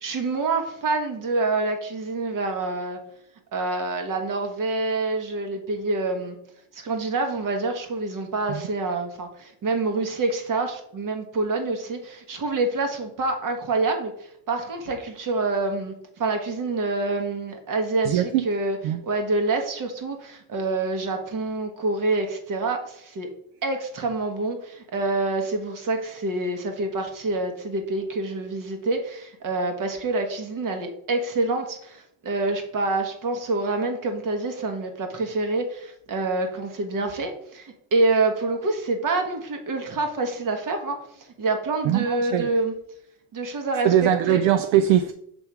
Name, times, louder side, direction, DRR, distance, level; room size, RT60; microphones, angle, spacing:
voice 1, 0.0-3.0 3.5-6.4 6.7-18.8 19.0-23.3 23.6-42.7 43.3-44.4, right 3 dB, 40° right, 1.5 m, -27 dB
voice 2, 18.0-18.4 18.8-19.0 41.8-42.5 43.8-45.1, right 11 dB, 70° right, 0.6 m, -21 dB
7.2 x 3.5 x 4.6 m
cardioid pair, 115°, 48 cm